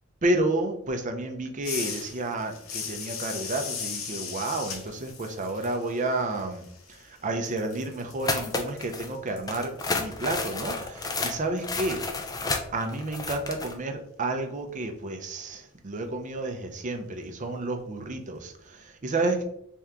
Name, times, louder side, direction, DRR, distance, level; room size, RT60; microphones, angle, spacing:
voice 1, 0.2-6.6 6.9-12.0 12.7-19.4, right 2 dB, 35° right, 5 dB, 0.5 m, -30 dB
sound 1, 1.6-7.2 7.4-12.3, left 6 dB, 70° left, 0.7 m, -39 dB
sound 2, 8.2-9.1 9.5-13.7, left 3 dB, 20° left, 0.4 m, -31 dB
3.4 x 2.9 x 3.6 m, 0.73 s
head